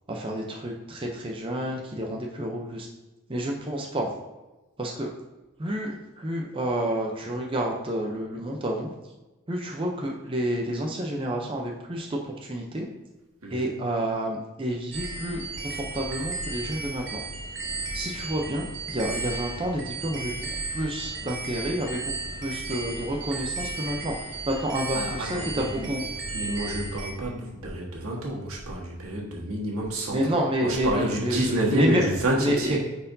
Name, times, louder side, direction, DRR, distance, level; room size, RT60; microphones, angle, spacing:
voice 1, 0.1-2.9 3.3-4.1 4.8-5.1 5.6-8.9 9.5-12.9 13.5-17.2 17.9-22.1 22.4-24.1 24.5-26.0 30.1-32.1 32.4-32.8, right 1 dB, 25° right, 0 dB, 0.6 m, -29 dB
sound 1, 14.9-27.1, right 3 dB, 55° right, 1.1 m, -34 dB
voice 2, 24.9-25.9 26.3-32.8, right 1 dB, 90° right, -2 dB, 1.6 m, -29 dB
9.1 x 4.3 x 2.7 m, 1.1 s
head